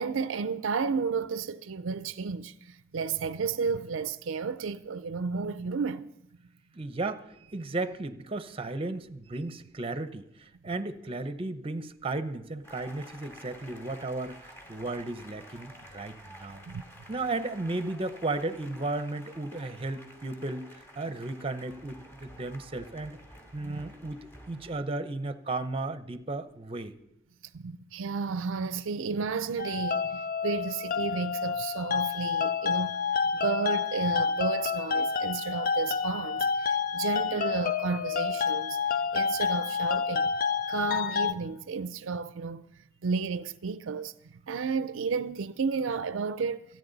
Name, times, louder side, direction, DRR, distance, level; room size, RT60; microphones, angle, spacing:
voice 1, 0.0-6.1 16.7-16.8 23.6-23.8 27.5-32.9 33.3-38.8 39.1-40.3 40.7-46.7, right 5 dB, 75° right, 0.5 m, -32 dB
voice 2, 6.7-16.6 17.1-23.2 23.5-26.9, right 2 dB, 30° right, 0.8 m, -35 dB
sound 1, 12.6-24.8, equal, 10° left, 2.4 m, -51 dB
sound 2, 29.6-41.3, left 6 dB, 45° left, 0.6 m, -29 dB
27.5 x 9.4 x 4.0 m
head